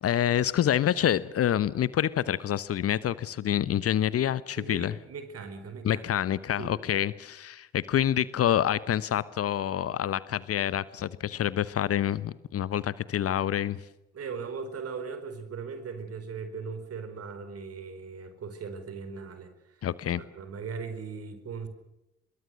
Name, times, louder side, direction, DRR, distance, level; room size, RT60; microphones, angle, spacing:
voice 1, 0.0-4.9 5.8-13.8 19.8-20.2, left 10 dB, 45° left, 18 dB, 1.0 m, -27 dB
voice 2, 4.6-6.0 6.6-6.7 14.1-19.9 20.1-21.7, right 5 dB, 45° right, 10 dB, 4.6 m, -39 dB
24.5 x 22.0 x 6.4 m, 0.90 s
figure-of-eight pair, 45°, 33 cm